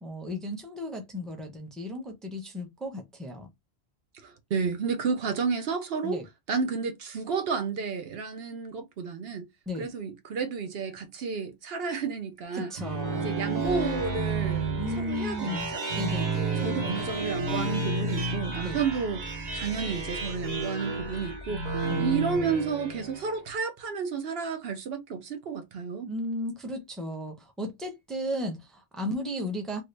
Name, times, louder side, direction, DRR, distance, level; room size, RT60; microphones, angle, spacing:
voice 1, 0.0-3.5 6.0-6.2 9.7-9.9 12.5-13.4 14.8-16.8 18.6-18.8 21.9-22.1 26.0-29.8, left 1 dB, ahead, 0.6 m, -35 dB
voice 2, 4.1-6.2 6.5-9.5 9.8-12.7 13.2-16.3 16.6-26.1, right 5 dB, 70° right, 0.8 m, -31 dB
sound 1, 12.5-23.4, right 3 dB, 40° right, 1.0 m, -31 dB
2.8 x 2.7 x 3.2 m
omnidirectional pair, 1.1 m